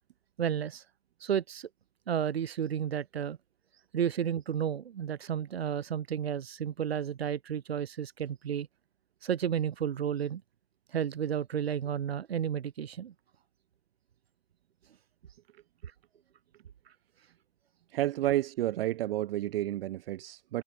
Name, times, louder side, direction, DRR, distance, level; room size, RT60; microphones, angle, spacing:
voice 1, 0.4-0.8 1.2-1.7 2.1-3.4 3.9-8.7 9.2-10.4 10.9-13.1, right 9 dB, 90° right, 1.0 m, -32 dB
voice 2, 17.9-20.6, right 14 dB, 70° right, 0.7 m, -30 dB
hypercardioid pair, 110°, 30 cm